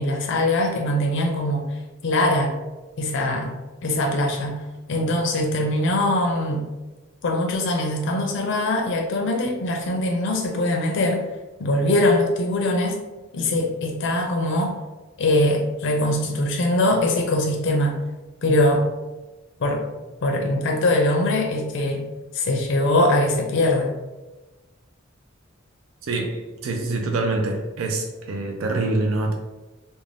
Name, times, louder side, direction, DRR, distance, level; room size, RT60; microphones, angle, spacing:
voice 1, 0.0-1.7 2.0-2.5 3.0-3.5 3.8-4.6 4.9-6.6 7.2-11.3 11.6-13.0 13.3-14.8 15.2-18.0 18.4-18.8 19.6-19.8 20.2-22.1 22.3-23.9, left 1 dB, 65° left, 1 dB, 0.4 m, -22 dB
voice 2, 26.0-29.3, right 2 dB, 75° right, 2 dB, 0.4 m, -25 dB
2.5 x 2.2 x 3.2 m, 1.1 s
head